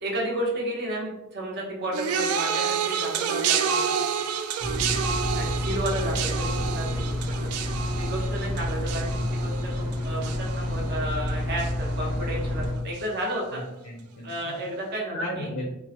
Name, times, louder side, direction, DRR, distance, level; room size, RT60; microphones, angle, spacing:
voice 1, 0.0-4.1 5.3-7.3 8.0-13.6 14.2-15.5, right 1 dB, 50° right, -2 dB, 0.8 m, -32 dB
sound 1, 1.9-11.3 11.6-12.1 13.0-13.1, right 7 dB, 85° right, 0.3 m, -29 dB
sound 2, 4.6-12.7, left 1 dB, 10° right, 0.7 m, -29 dB
voice 2, 13.5-14.6 15.1-15.7, equal, 80° left, -1 dB, 0.5 m, -35 dB
3.1 x 2.1 x 2.8 m, 0.90 s
head